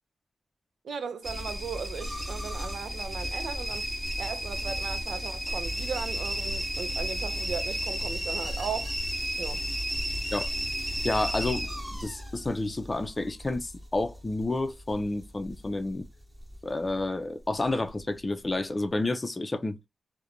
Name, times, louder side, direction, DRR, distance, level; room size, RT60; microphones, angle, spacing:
voice 1, 0.8-3.9 4.2-8.9 9.4-9.7, right 6 dB, 80° right, 0.4 m, -37 dB
sound 1, 1.2-16.1 16.4-17.0 17.5-18.0 18.5-18.6, equal, 10° right, 0.9 m, -33 dB
voice 2, 11.0-11.7 12.0-16.1 16.6-19.8, left 2 dB, 30° left, 0.4 m, -30 dB
2.5 x 2.1 x 2.7 m
cardioid pair, 65°, 0 cm